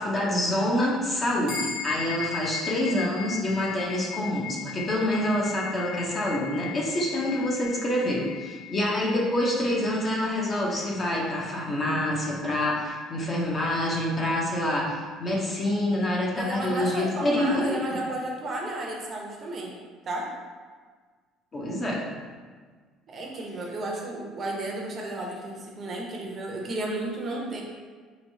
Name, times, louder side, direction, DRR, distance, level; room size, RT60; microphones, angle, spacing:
voice 1, 0.0-18.0 21.5-22.1, left 1 dB, 30° left, -3 dB, 0.7 m, -27 dB
sound 1, 1.5-11.2, left 9 dB, 75° left, 1.0 m, -38 dB
voice 2, 16.3-19.7 20.0-20.3 23.1-27.6, right 1 dB, 35° right, -1 dB, 0.6 m, -33 dB
4.1 x 3.1 x 2.7 m, 1.5 s
cardioid pair, 130°, 0 cm